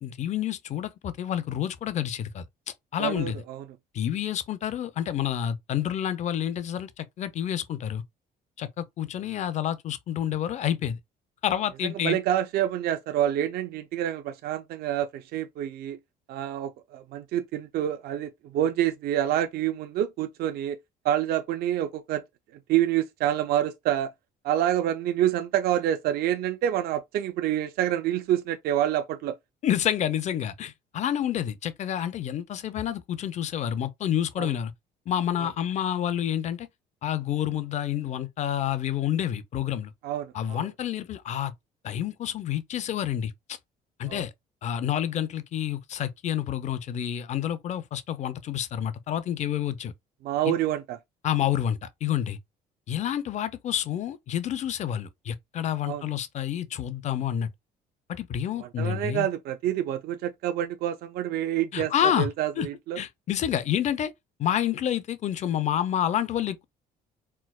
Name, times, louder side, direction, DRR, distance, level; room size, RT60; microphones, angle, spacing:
voice 1, 0.0-2.4 2.9-3.4 3.9-8.0 8.6-11.0 11.4-12.2 29.6-34.7 35.1-36.7 37.0-39.9 40.3-41.5 41.8-43.6 44.0-44.3 44.6-49.9 50.5-50.6 51.2-52.4 52.9-57.5 58.1-59.3 61.7-62.3 62.6-62.7 63.0-64.1 64.4-66.6, left 10 dB, 45° left, 0.4 m, -29 dB
voice 2, 3.0-3.6 12.0-16.0 16.3-20.8 21.0-22.2 22.7-24.1 24.4-29.4 34.4-34.5 35.4-35.5 40.0-40.7 44.1-44.2 50.2-51.0 55.9-56.0 58.6-63.0, right 11 dB, 65° right, 0.4 m, -27 dB
4.4 x 2.0 x 2.3 m
cardioid pair, 110°, 17 cm